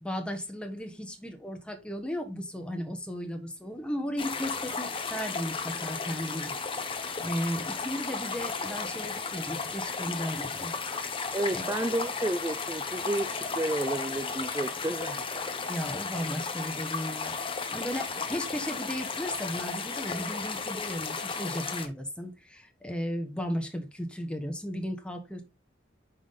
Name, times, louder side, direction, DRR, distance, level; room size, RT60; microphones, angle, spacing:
voice 1, 0.0-10.7 11.5-11.6 15.7-25.4, equal, 5° left, 1.4 m, -35 dB
sound 1, 4.2-21.9, left 4 dB, 25° left, 1.0 m, -34 dB
voice 2, 11.3-15.2, right 1 dB, 15° right, 0.4 m, -31 dB
6.1 x 6.0 x 4.1 m
head